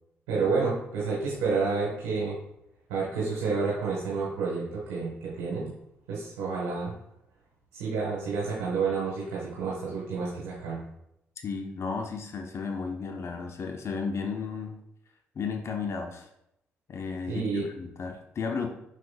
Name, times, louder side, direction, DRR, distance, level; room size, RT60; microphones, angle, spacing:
voice 1, 0.3-2.4 2.9-5.7 6.1-6.9 7.7-10.8 17.3-17.6, right 4 dB, 85° right, -6 dB, 1.4 m, -29 dB
voice 2, 11.4-14.8 15.4-16.3 16.9-18.7, left 5 dB, 55° left, 4 dB, 0.8 m, -33 dB
6.6 x 6.3 x 2.3 m, 0.81 s
hypercardioid pair, 50°, 6 cm